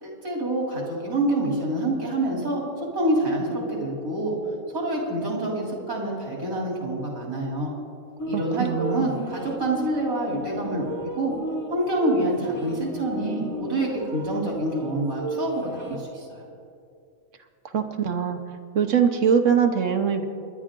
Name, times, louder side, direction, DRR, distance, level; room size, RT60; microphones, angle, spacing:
voice 1, 0.0-4.3 4.7-7.7 8.3-10.9 11.2-11.3 11.7-16.4, right 1 dB, 80° right, -2 dB, 3.8 m, -27 dB
sound 1, 8.2-16.0, right 1 dB, 15° left, 1.0 m, -33 dB
voice 2, 8.3-9.1 17.7-18.4 18.7-20.3, right 7 dB, 60° right, 6 dB, 1.2 m, -22 dB
27.0 x 10.5 x 3.8 m, 2.5 s
omnidirectional pair, 1.5 m